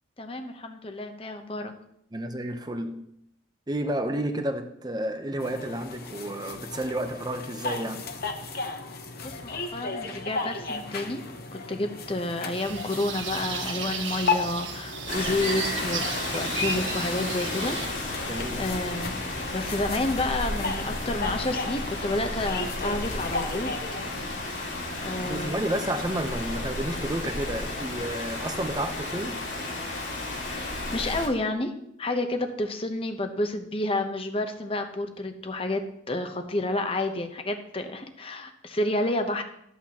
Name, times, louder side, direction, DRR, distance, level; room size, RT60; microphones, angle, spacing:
voice 1, 0.2-1.7 9.2-11.2 11.5-16.1 16.3-17.8 18.1-24.0 25.0-25.7 30.9-31.7 32.0-39.4, left 2 dB, 30° left, 0.8 m, -30 dB
voice 2, 2.1-3.1 3.7-8.0 18.2-18.6 25.2-29.4, right 1 dB, 20° right, 0.7 m, -31 dB
sound 1, 5.4-24.3, left 4 dB, 50° left, 0.9 m, -35 dB
sound 2, 12.5-17.9, right 4 dB, 80° right, 1.4 m, -34 dB
Rain, 15.1-31.3, left 2 dB, 80° left, 2.7 m, -33 dB
13.0 x 8.5 x 2.9 m
head